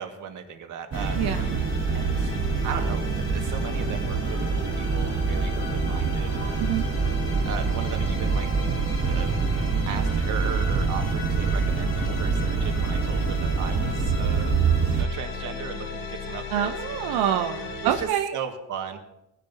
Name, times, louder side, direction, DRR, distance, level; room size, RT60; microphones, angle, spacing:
voice 1, 0.0-1.5 1.9-2.4 2.6-6.7 7.5-8.5 9.1-9.3 9.9-14.6 14.9-16.7 17.8-19.0, right 7 dB, 55° right, 4 dB, 1.9 m, -36 dB
sound 1, 0.9-18.0, left 3 dB, 90° left, 5.1 m, -35 dB
sound 2, 0.9-15.0, right 5 dB, 35° right, 1.2 m, -26 dB
voice 2, 1.2-1.6 6.6-6.9 16.5-18.4, right 10 dB, 80° right, 6 dB, 0.8 m, -26 dB
19.5 x 10.5 x 2.8 m, 0.87 s
cardioid pair, 140°, 37 cm